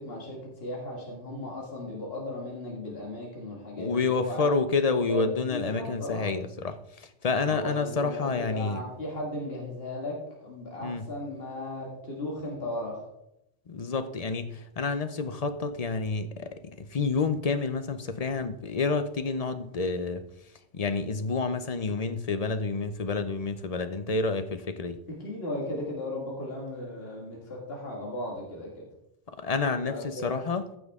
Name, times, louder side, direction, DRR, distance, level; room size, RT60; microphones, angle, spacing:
voice 1, 0.0-4.5 4.8-6.3 7.5-13.1 25.2-28.9 29.8-30.4, left 1 dB, 70° left, 2.1 m, -36 dB
voice 2, 3.8-8.8 10.8-11.1 13.7-20.3 20.7-25.0 29.4-30.7, left 4 dB, 45° left, 0.6 m, -29 dB
14.5 x 6.2 x 3.6 m
omnidirectional pair, 1.1 m